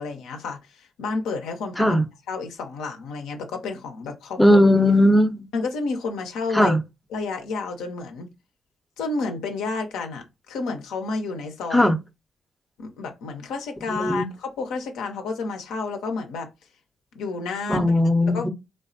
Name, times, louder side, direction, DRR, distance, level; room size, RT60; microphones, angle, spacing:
voice 1, 0.0-2.0 2.3-4.6 5.5-6.8 7.1-8.3 9.0-11.9 12.8-16.5 17.1-17.9 18.3-18.5, left 4 dB, 80° left, 0.4 m, -30 dB
voice 2, 4.4-5.4 6.5-6.8 11.7-12.0 13.9-14.2 17.7-18.5, left 1 dB, ahead, 0.5 m, -18 dB
3.2 x 2.0 x 2.6 m
hypercardioid pair, 45°, 0 cm